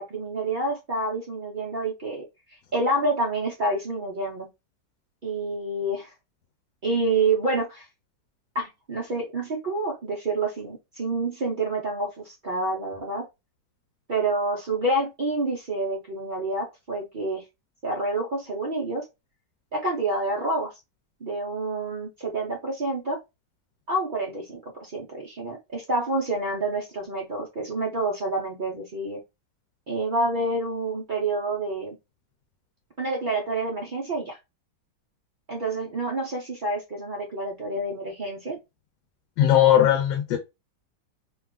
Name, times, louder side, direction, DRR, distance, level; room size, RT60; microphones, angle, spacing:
voice 1, 0.0-4.5 5.2-6.1 6.8-7.9 8.5-13.3 14.1-17.4 17.8-19.0 19.7-20.7 21.2-23.2 23.9-29.2 29.9-32.0 33.0-34.4 35.5-38.6, right 2 dB, 70° right, 0.4 m, -28 dB
voice 2, 39.4-40.4, left 11 dB, 85° left, 1.3 m, -18 dB
3.0 x 2.3 x 3.5 m
omnidirectional pair, 1.9 m